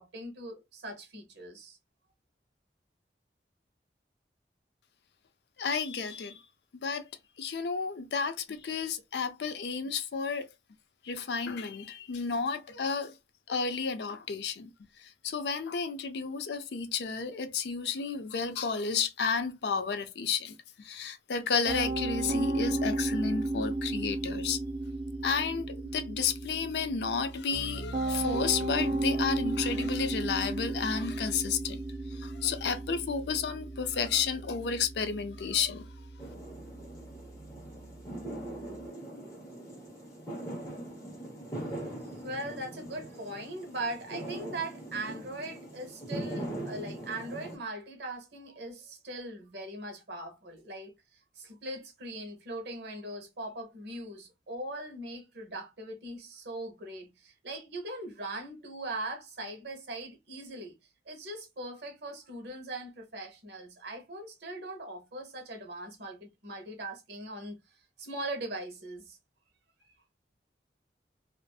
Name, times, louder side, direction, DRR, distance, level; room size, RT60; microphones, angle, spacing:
voice 1, 0.0-1.8 41.7-41.9 42.2-60.7 61.1-67.6 68.0-69.2, right 1 dB, 80° right, 0.9 m, -40 dB
voice 2, 5.6-6.4 6.8-7.0 7.4-10.5 11.0-13.1 13.5-14.7 15.0-24.6 25.2-31.8 32.1-35.9, left 5 dB, 75° left, 0.4 m, -32 dB
Piano, 21.7-38.8, right 2 dB, 40° right, 0.5 m, -34 dB
sound 1, 36.2-47.6, right 1 dB, 20° left, 1.0 m, -41 dB
2.5 x 2.4 x 2.3 m
head